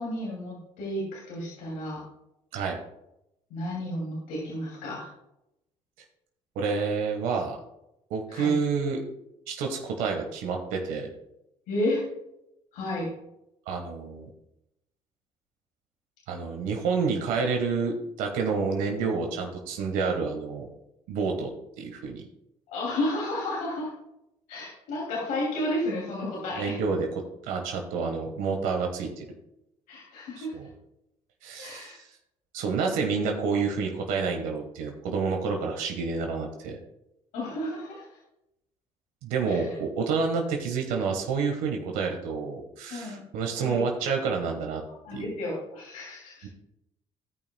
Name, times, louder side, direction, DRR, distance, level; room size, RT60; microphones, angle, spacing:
voice 1, 0.0-2.0 3.5-5.1 8.3-8.5 11.7-12.0 12.7-13.1 22.7-23.9 24.5-26.8 29.9-30.5 31.6-32.0 37.3-38.1 39.5-39.8 42.9-43.2 43.6-43.8 45.0-46.5, left 1 dB, 85° left, -4 dB, 2.7 m, -32 dB
voice 2, 6.5-7.6 8.1-9.0 9.5-11.1 13.7-14.3 16.3-20.7 21.1-21.5 21.8-22.2 26.6-29.2 30.4-30.7 31.4-32.0 32.5-36.8 39.2-44.8 45.1-45.3 46.4-46.5, right 5 dB, 90° right, 2 dB, 1.4 m, -29 dB
16.5 x 5.6 x 2.3 m, 0.84 s
cardioid pair, 90°, 14 cm